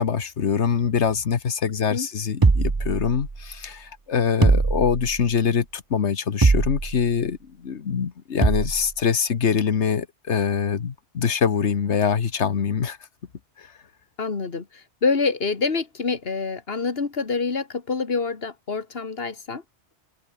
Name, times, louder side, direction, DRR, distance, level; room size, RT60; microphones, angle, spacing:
voice 1, 0.0-13.0 13.6-13.7, left 6 dB, 80° left, 1.6 m, -24 dB
sound 1, 2.4-3.5 4.4-5.3 6.4-7.1 8.4-8.9, right 3 dB, 25° right, 0.7 m, -21 dB
voice 2, 14.2-19.6, left 4 dB, 60° left, 2.1 m, -26 dB
omnidirectional pair, 1.2 m